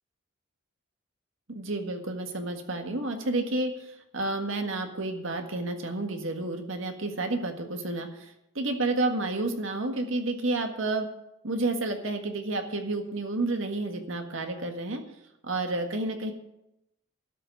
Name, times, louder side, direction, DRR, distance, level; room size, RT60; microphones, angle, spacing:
voice 1, 1.5-11.1 11.4-15.0 15.4-16.3, right 2 dB, 80° right, 5 dB, 1.8 m, -30 dB
12.0 x 6.7 x 9.5 m, 0.87 s
head